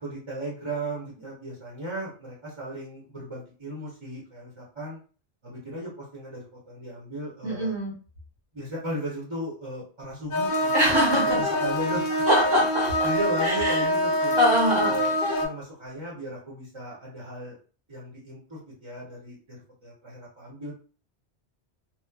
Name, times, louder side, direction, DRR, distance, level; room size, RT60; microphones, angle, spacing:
voice 1, 0.0-5.0 5.4-7.7 8.5-12.5 13.0-14.4 14.8-15.1 15.4-17.6 17.9-20.7, right 1 dB, 30° right, -5 dB, 0.7 m, -36 dB
voice 2, 7.4-7.9 10.7-11.4 12.3-13.1 13.4-13.8 14.4-14.9, equal, 85° right, -7 dB, 1.4 m, -23 dB
sound 1, 10.3-15.5, equal, 60° left, 0.5 m, -25 dB
2.9 x 2.1 x 2.2 m, 0.39 s
omnidirectional pair, 1.2 m